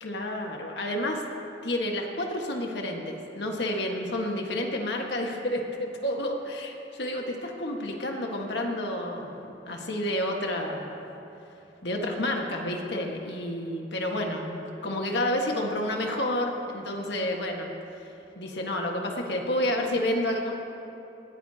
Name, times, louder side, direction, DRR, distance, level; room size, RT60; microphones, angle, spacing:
voice 1, 0.0-1.2 1.6-11.2 11.8-17.7 18.4-20.5, left 1 dB, 65° left, 1 dB, 1.6 m, -30 dB
19.5 x 15.5 x 2.9 m, 2.9 s
head